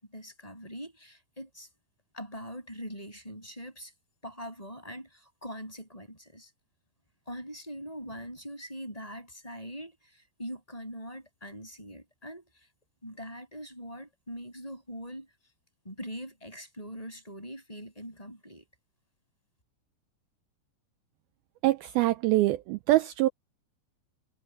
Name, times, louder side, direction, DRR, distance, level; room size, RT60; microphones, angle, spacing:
voice 1, 0.1-1.7 2.1-3.9 4.2-6.5 7.3-12.5 13.0-15.3 15.8-18.7, equal, 10° left, 7.7 m, -42 dB
voice 2, 21.6-23.3, right 17 dB, 80° right, 2.2 m, -24 dB
omnidirectional pair, 5.0 m